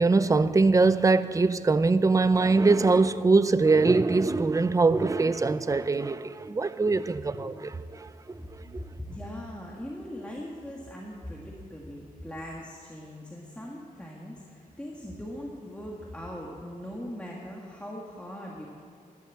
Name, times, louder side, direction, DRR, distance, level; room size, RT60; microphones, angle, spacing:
voice 1, 0.0-8.8, right 3 dB, 20° right, 0.5 m, -23 dB
voice 2, 9.1-18.7, equal, 10° left, 1.7 m, -40 dB
11.5 x 11.0 x 8.4 m
wide cardioid pair, 100°, 15 cm